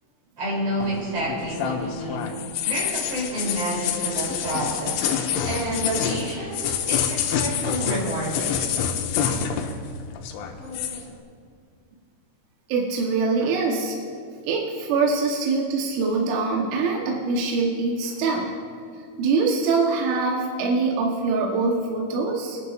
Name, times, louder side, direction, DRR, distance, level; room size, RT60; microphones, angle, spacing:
voice 1, 0.4-5.1 5.4-8.6 10.6-11.0, right 1 dB, 35° right, -4 dB, 3.9 m, -29 dB
sound 1, 0.8-9.9 10.2-11.0, left 8 dB, 85° left, 3.2 m, -27 dB
voice 2, 12.7-14.0 14.4-18.5 19.2-22.6, right 4 dB, 80° right, -1 dB, 3.6 m, -23 dB
25.5 x 11.0 x 2.5 m, 2.1 s
omnidirectional pair, 5.5 m